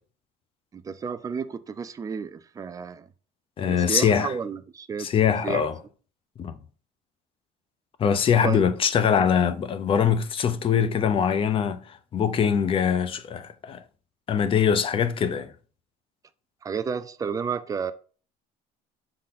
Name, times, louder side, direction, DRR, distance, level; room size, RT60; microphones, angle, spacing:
voice 1, 0.7-3.1 3.6-5.1 5.4-5.7 8.4-8.6 16.6-17.9, right 6 dB, 20° right, 0.5 m, -31 dB
voice 2, 3.6-4.3 5.0-5.8 6.4-6.6 8.0-13.8 14.3-15.5, left 7 dB, 30° left, 0.6 m, -23 dB
6.5 x 3.9 x 4.1 m
cardioid pair, 150°, 17 cm